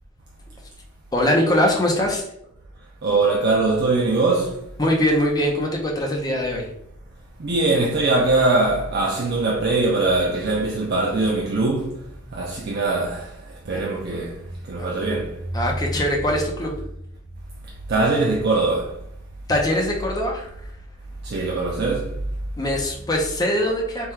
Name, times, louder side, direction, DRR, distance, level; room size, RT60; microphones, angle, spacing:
voice 1, 1.1-2.2 4.8-6.7 13.7-13.8 14.8-14.9 15.5-16.7 19.5-20.7 22.6-24.1, left 1 dB, 20° left, 0.6 m, -22 dB
voice 2, 3.0-4.7 7.4-15.4 17.9-19.0 21.2-22.2, right 3 dB, 55° right, 0.5 m, -22 dB
3.5 x 2.3 x 4.3 m
head